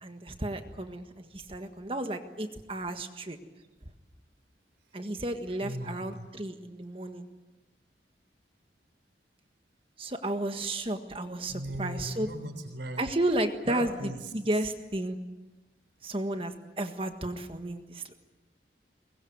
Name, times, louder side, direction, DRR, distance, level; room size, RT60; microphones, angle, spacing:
voice 1, 0.0-3.4 4.9-7.3 10.0-12.3 13.0-15.2 16.0-18.1, right 1 dB, 30° right, 6 dB, 1.6 m, -33 dB
voice 2, 5.6-6.3 11.5-13.1 13.7-14.3, right 1 dB, 85° right, 7 dB, 3.8 m, -38 dB
24.0 x 21.0 x 9.7 m, 1.1 s
head